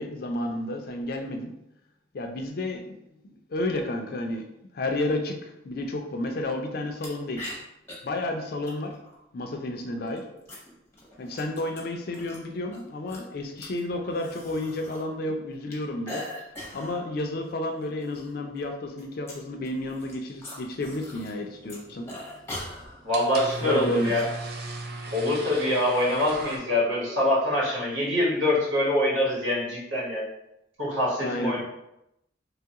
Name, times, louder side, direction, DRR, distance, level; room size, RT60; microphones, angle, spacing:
voice 1, 0.0-1.5 2.1-3.0 3.2-4.4 4.7-7.4 8.0-9.0 9.3-10.3 11.2-16.3 16.7-22.1 23.6-24.1 31.2-31.6, left 1 dB, 50° left, 4 dB, 0.3 m, -31 dB
sound 1, 7.0-7.1 7.4-7.9 8.7-9.2 10.0-12.4 12.7-15.0 15.3-17.0 17.4-17.5 17.8-18.3 18.6-21.4 21.6-24.2, left 1 dB, 15° left, 0.6 m, -42 dB
sound 2, 21.4-26.6, right 2 dB, 50° right, 0.4 m, -38 dB
voice 2, 23.0-24.3 25.1-30.3 30.8-31.6, left 1 dB, 80° right, -6 dB, 1.3 m, -25 dB
3.0 x 2.3 x 2.8 m, 0.85 s
head